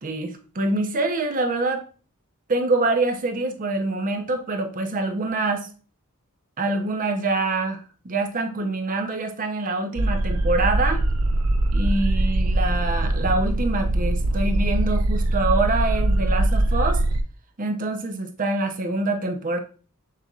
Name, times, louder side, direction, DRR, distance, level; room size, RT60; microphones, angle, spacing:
voice 1, 0.0-1.8 2.5-5.7 6.6-11.0 11.7-17.0 17.6-19.6, right 2 dB, 40° right, 6 dB, 0.7 m, -25 dB
sound 1, 10.0-17.2, right 1 dB, 80° right, 0.5 m, -22 dB
6.5 x 3.4 x 2.4 m, 0.37 s
head